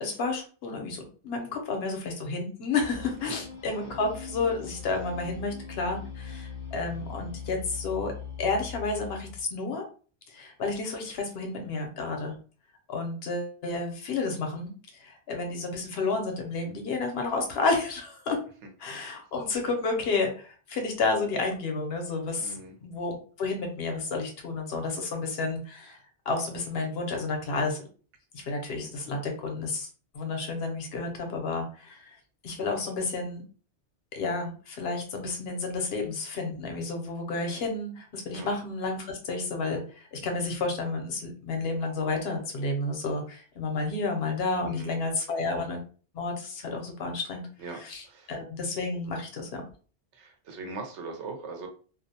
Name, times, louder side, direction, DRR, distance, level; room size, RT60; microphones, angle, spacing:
voice 1, 0.0-8.1 8.4-9.8 10.3-12.3 12.9-18.4 18.8-26.0 26.3-27.8 28.3-29.9 30.1-32.1 32.4-33.4 34.1-45.8 46.1-47.4 47.7-49.6, left 3 dB, 65° left, 3 dB, 0.8 m, -31 dB
sound 1, 2.9-9.4, left 6 dB, 35° left, 0.6 m, -41 dB
voice 2, 22.4-22.7 38.3-38.5 44.6-45.0 47.6-48.3 50.1-51.7, right 3 dB, 80° right, 3 dB, 1.0 m, -40 dB
2.4 x 2.0 x 2.7 m, 0.40 s
omnidirectional pair, 1.2 m